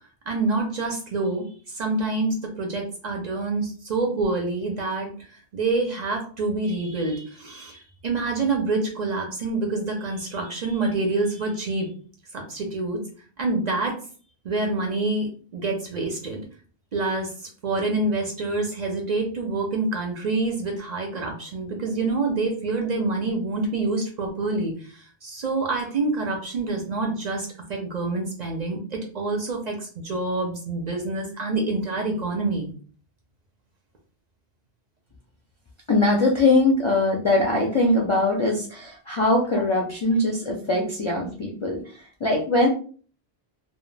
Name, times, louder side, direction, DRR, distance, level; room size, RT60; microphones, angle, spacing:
voice 1, 0.3-1.5 1.7-11.9 12.3-13.0 13.4-14.0 14.4-16.4 16.9-32.7, right 3 dB, 50° right, 1 dB, 0.6 m, -27 dB
voice 2, 35.9-42.7, left 2 dB, 45° left, -2 dB, 0.4 m, -22 dB
2.1 x 2.1 x 3.1 m, 0.42 s
omnidirectional pair, 1.1 m